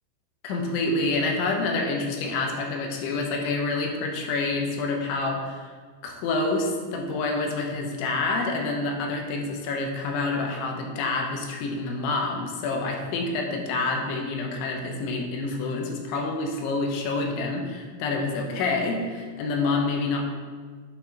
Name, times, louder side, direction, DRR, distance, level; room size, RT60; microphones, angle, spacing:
voice 1, 0.4-5.7 6.0-20.2, left 3 dB, 80° left, 2 dB, 3.0 m, -27 dB
11.0 x 5.7 x 2.8 m, 1.6 s
omnidirectional pair, 5.7 m